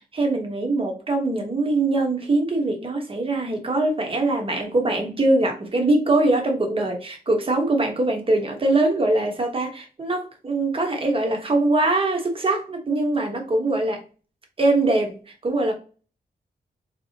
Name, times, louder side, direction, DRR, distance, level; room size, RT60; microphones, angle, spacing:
voice 1, 0.1-14.0 14.6-15.2 15.4-15.7, right 2 dB, 35° right, 3 dB, 1.0 m, -22 dB
3.9 x 2.8 x 2.7 m, 0.35 s
wide cardioid pair, 130°, 17 cm